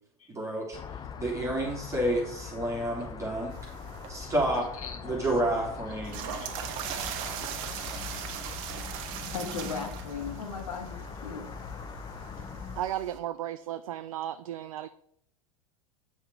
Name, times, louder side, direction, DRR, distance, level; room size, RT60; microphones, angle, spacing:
voice 1, 0.3-0.8 1.2-3.5 4.1-4.7 5.0-6.5, right 1 dB, 15° right, 2.8 m, -30 dB
sound 1, 0.7-12.8, left 7 dB, 25° left, 0.7 m, -42 dB
sound 2, 3.5-13.2, right 9 dB, 55° right, 1.2 m, -40 dB
voice 2, 4.8-5.3 6.4-6.5 8.0-8.1 9.3-11.5, left 5 dB, 75° left, 1.5 m, -38 dB
voice 3, 12.8-14.9, right 11 dB, 70° right, 0.5 m, -34 dB
8.8 x 5.7 x 4.6 m
figure-of-eight pair, 85°, 18 cm